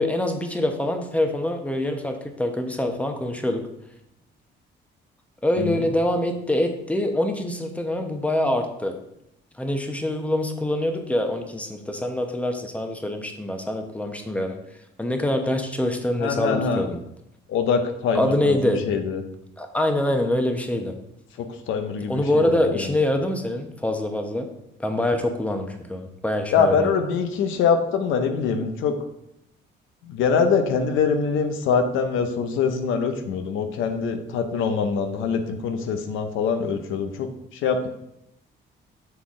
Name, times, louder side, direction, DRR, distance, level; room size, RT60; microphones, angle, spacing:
voice 1, 0.0-3.6 5.4-8.9 9.6-14.6 15.0-17.0 18.1-18.8 19.6-20.9 22.1-24.5 24.8-26.9, left 1 dB, 5° left, 4 dB, 0.9 m, -25 dB
voice 2, 16.2-16.9 17.5-19.2 21.4-23.0 26.5-29.0 30.0-37.9, left 5 dB, 90° left, 7 dB, 0.7 m, -24 dB
7.9 x 4.0 x 3.7 m, 0.81 s
cardioid pair, 90°, 20 cm